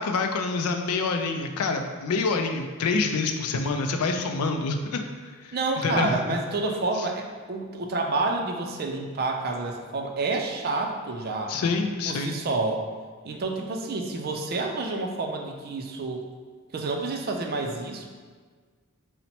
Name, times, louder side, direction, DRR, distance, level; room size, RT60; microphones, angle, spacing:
voice 1, 0.0-5.0 5.4-5.6 5.8-6.2 11.5-12.3, left 4 dB, 80° left, 5 dB, 0.4 m, -26 dB
voice 2, 5.5-11.6 12.1-12.9 13.2-16.3 16.7-18.1, right 3 dB, 45° right, 3 dB, 0.4 m, -29 dB
4.1 x 2.1 x 4.2 m, 1.5 s
head